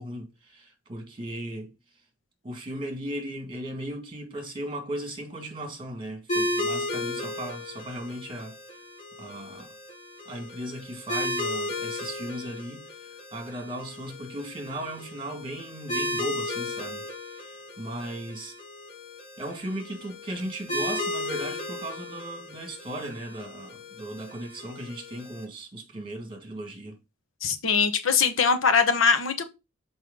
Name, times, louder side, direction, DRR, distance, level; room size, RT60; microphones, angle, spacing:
voice 1, 0.0-1.7 2.4-8.8 9.2-9.7 10.3-18.6 19.4-27.0, right 1 dB, 25° right, 1.8 m, -37 dB
sound 1, 6.3-25.4, left 1 dB, 35° left, 2.7 m, -35 dB
voice 2, 27.4-29.4, left 5 dB, 85° left, 1.0 m, -22 dB
6.3 x 4.5 x 3.7 m
head